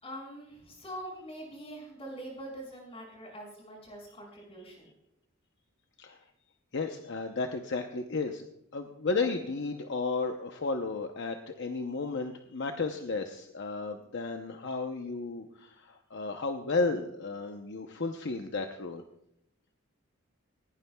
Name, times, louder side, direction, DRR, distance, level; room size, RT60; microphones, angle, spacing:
voice 1, 0.0-4.9, right 1 dB, 30° left, -2 dB, 6.1 m, -44 dB
voice 2, 6.7-8.4 8.7-19.0, left 3 dB, 60° left, 5 dB, 0.8 m, -33 dB
19.0 x 17.0 x 2.3 m, 0.79 s
head